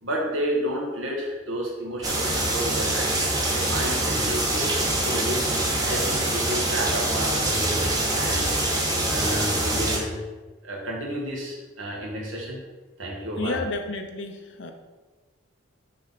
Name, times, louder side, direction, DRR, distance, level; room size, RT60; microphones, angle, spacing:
voice 1, 0.0-5.5 5.8-8.5 9.0-10.2 10.6-12.6 13.0-13.6, equal, 75° right, -2 dB, 1.8 m, -31 dB
sound 1, 2.0-10.0, right 1 dB, 20° right, 1.0 m, -24 dB
voice 2, 13.4-14.7, left 2 dB, 65° left, 4 dB, 0.8 m, -31 dB
6.7 x 3.9 x 5.9 m, 1.3 s
head